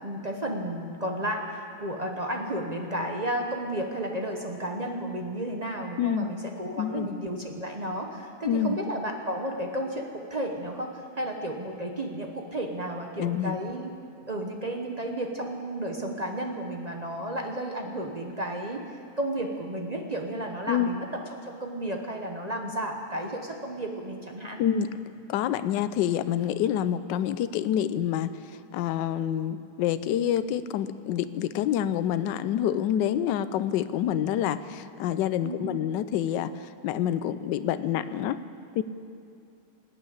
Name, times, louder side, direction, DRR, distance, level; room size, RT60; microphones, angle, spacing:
voice 1, 0.0-13.9 14.3-18.8 19.2-24.6 35.4-35.7, right 1 dB, 40° right, 2 dB, 0.5 m, -33 dB
voice 2, 6.0-6.3 6.8-7.1 8.4-8.8 13.2-13.6 20.7-20.9 24.6-25.0 25.3-28.3 28.7-36.5 36.8-38.4 38.8-38.9, left 10 dB, 70° left, 13 dB, 1.1 m, -27 dB
19.0 x 8.3 x 8.6 m, 2.5 s
omnidirectional pair, 2.3 m